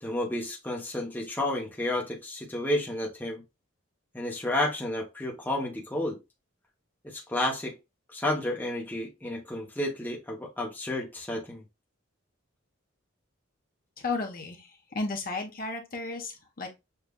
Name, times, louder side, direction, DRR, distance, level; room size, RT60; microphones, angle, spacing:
voice 1, 0.0-3.4 4.1-6.2 7.0-7.7 8.1-11.6, left 1 dB, 10° left, 0.7 m, -31 dB
voice 2, 14.0-14.7 14.9-16.7, left 3 dB, 45° left, 1.0 m, -33 dB
6.8 x 2.4 x 2.3 m
head